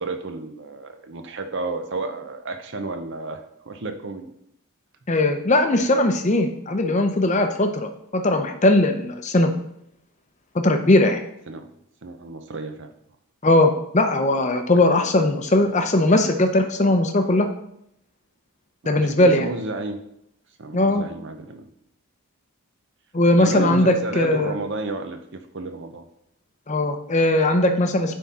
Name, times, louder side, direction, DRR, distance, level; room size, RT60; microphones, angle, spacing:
voice 1, 0.0-4.3 11.5-11.7 12.0-12.9 18.8-20.0 20.6-21.7 23.3-26.1, right 3 dB, 55° right, 7 dB, 0.7 m, -32 dB
voice 2, 5.1-9.5 10.5-11.2 13.4-17.5 18.9-19.5 20.7-21.0 23.1-24.5 26.7-28.2, left 1 dB, 30° left, 6 dB, 0.6 m, -19 dB
9.5 x 3.7 x 4.2 m, 0.76 s
head